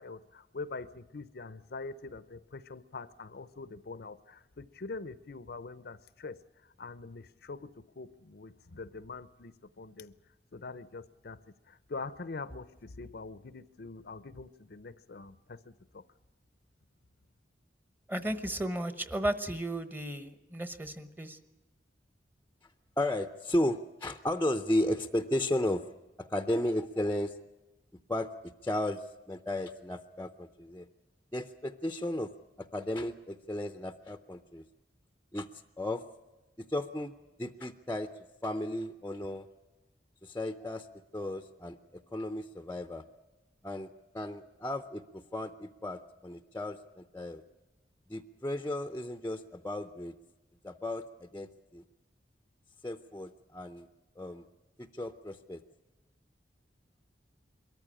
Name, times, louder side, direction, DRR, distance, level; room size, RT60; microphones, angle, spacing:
voice 1, 0.0-7.7 7.9-10.1 10.5-11.4 11.7-16.0, left 3 dB, 60° left, 15 dB, 0.7 m, -44 dB
voice 2, 18.1-21.4, right 1 dB, 10° right, 11 dB, 1.0 m, -34 dB
voice 3, 23.0-25.9 26.2-27.3 28.1-28.3 28.6-30.9 31.3-32.3 32.6-34.6 35.3-35.5 35.8-36.0 36.7-37.1 37.4-38.1 38.4-39.5 40.2-40.9 41.1-41.8 42.1-43.0 43.6-43.9 44.1-47.4 48.1-50.1 50.6-51.8 52.8-53.9 54.2-54.4 54.9-55.6, left 1 dB, 10° left, 8 dB, 0.6 m, -34 dB
22.5 x 14.0 x 9.9 m, 1.1 s
head